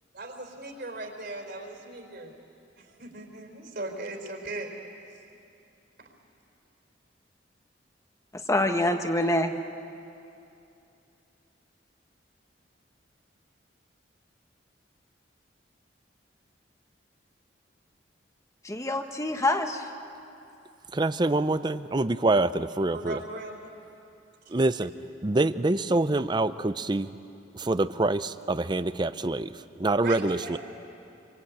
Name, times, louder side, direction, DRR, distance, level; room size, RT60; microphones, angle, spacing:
voice 1, 0.1-2.3 2.8-4.7 22.9-23.7 24.4-24.6 30.0-30.6, right 2 dB, 60° right, 2 dB, 4.4 m, -38 dB
voice 2, 8.5-9.5 18.6-19.8, left 1 dB, 15° left, 6 dB, 1.3 m, -25 dB
voice 3, 20.9-23.2 24.5-24.9 25.2-27.1 27.5-29.5 29.8-30.6, right 2 dB, 25° right, 13 dB, 0.6 m, -25 dB
26.5 x 25.0 x 8.8 m, 2.7 s
head